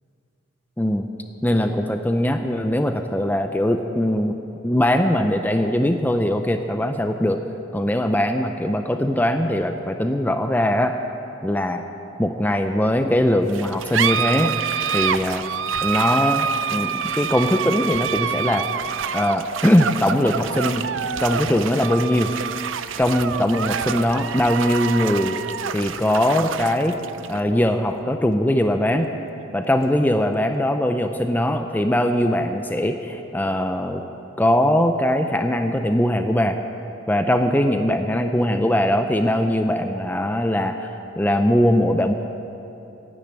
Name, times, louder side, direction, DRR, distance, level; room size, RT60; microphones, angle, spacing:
voice 1, 0.8-1.1 1.4-4.4 4.6-7.4 7.7-11.0 11.4-11.8 12.2-14.5 14.9-15.4 15.8-18.7 19.1-20.9 21.2-22.3 23.0-25.4 25.7-27.0 27.3-29.1 29.5-34.0 34.4-36.6 37.1-40.9 41.2-42.1, left 1 dB, 10° left, 6 dB, 0.5 m, -21 dB
sound 1, 13.5-30.5, right 7 dB, 80° right, 0.5 m, -27 dB
14.0 x 10.0 x 8.9 m, 3.0 s
head